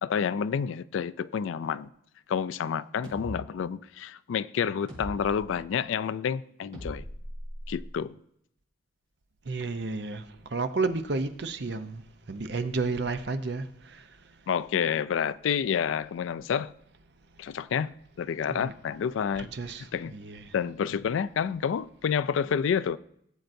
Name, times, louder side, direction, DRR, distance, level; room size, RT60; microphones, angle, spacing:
voice 1, 0.0-1.9 2.3-7.1 7.7-8.1 14.5-16.7 17.4-17.9 18.2-19.5 19.9-20.1 20.5-23.0, left 7 dB, 80° left, 0.3 m, -29 dB
sound 1, 3.0-3.3 4.9-5.4 6.7-7.9, equal, 35° right, 4.3 m, -40 dB
voice 2, 9.5-10.2 10.5-12.0 12.3-14.0 18.5-18.7 19.4-20.5, right 3 dB, 60° right, 0.6 m, -31 dB
16.0 x 7.6 x 2.6 m
head